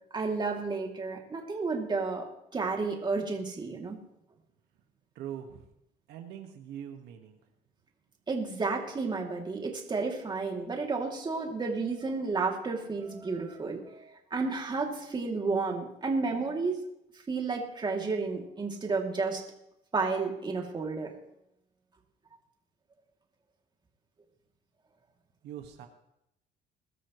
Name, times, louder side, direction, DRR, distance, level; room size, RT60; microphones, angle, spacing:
voice 1, 0.1-2.3 2.5-4.0 8.3-16.8 17.3-19.4 19.9-21.1, right 4 dB, 25° right, 1 dB, 2.8 m, -31 dB
voice 2, 5.1-5.6 6.1-7.4 25.4-25.9, right 10 dB, 80° right, 4 dB, 1.7 m, -42 dB
21.5 x 13.0 x 3.2 m, 0.82 s
cardioid pair, 110°, 17 cm